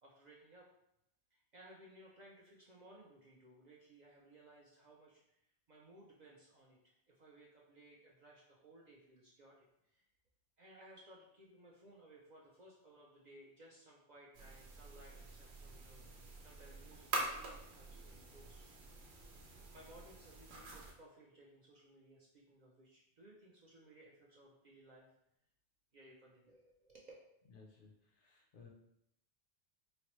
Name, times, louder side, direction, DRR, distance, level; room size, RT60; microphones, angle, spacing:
voice 1, 0.0-0.7 1.3-10.0 10.6-18.6 19.4-25.1 25.9-27.1, right 1 dB, 55° right, -3 dB, 0.5 m, -61 dB
sound 1, 14.3-20.9, right 2 dB, 70° right, 0.9 m, -46 dB
voice 2, 27.5-28.7, left 4 dB, 60° left, 0 dB, 0.6 m, -60 dB
4.1 x 2.0 x 2.9 m, 0.79 s
omnidirectional pair, 1.2 m